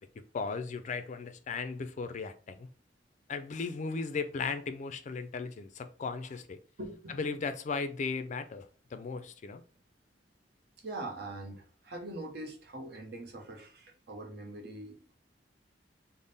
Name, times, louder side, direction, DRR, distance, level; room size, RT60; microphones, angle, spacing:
voice 1, 0.3-2.7 3.3-6.6 7.2-8.6 8.9-9.6, left 4 dB, 40° left, 0.3 m, -36 dB
voice 2, 6.8-7.4 10.8-15.1, right 2 dB, 60° right, 0.8 m, -43 dB
3.5 x 2.0 x 3.9 m
head